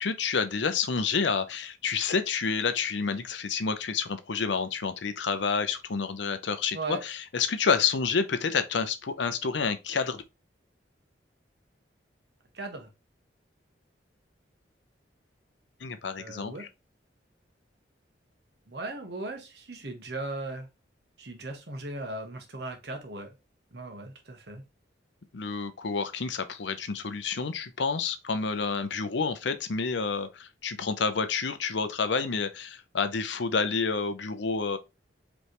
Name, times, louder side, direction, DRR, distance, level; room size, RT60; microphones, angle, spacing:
voice 1, 0.0-10.2 15.8-16.7 25.3-34.8, left 5 dB, 75° left, 0.6 m, -29 dB
voice 2, 12.5-12.9 16.1-16.7 18.7-20.7 21.2-23.3 23.7-24.6, right 2 dB, 60° right, 1.2 m, -37 dB
5.2 x 3.3 x 3.0 m
head